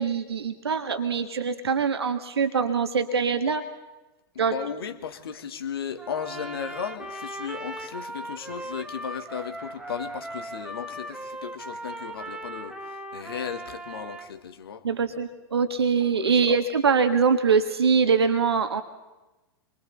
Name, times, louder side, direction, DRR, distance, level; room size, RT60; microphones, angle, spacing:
voice 1, 0.0-3.6 4.4-4.5 14.8-18.8, right 5 dB, 75° right, 1.7 m, -23 dB
voice 2, 4.3-12.8 13.1-14.8 16.2-16.6, left 7 dB, 65° left, 2.0 m, -35 dB
Trumpet, 6.0-14.3, right 1 dB, 5° right, 1.7 m, -38 dB
28.0 x 24.0 x 4.1 m
figure-of-eight pair, 95°, 14 cm